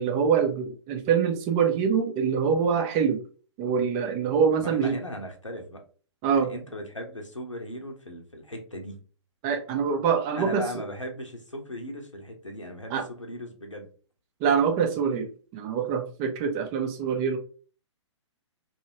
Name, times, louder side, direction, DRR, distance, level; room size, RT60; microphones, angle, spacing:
voice 1, 0.0-3.2 3.6-5.0 6.2-6.5 9.4-10.7 12.9-13.0 14.4-17.4, right 6 dB, 25° right, 5 dB, 0.5 m, -25 dB
voice 2, 4.6-5.8 6.3-9.0 10.4-13.9, equal, 90° left, 2 dB, 1.0 m, -38 dB
2.9 x 2.7 x 2.8 m, 0.39 s
figure-of-eight pair, 120°, 16 cm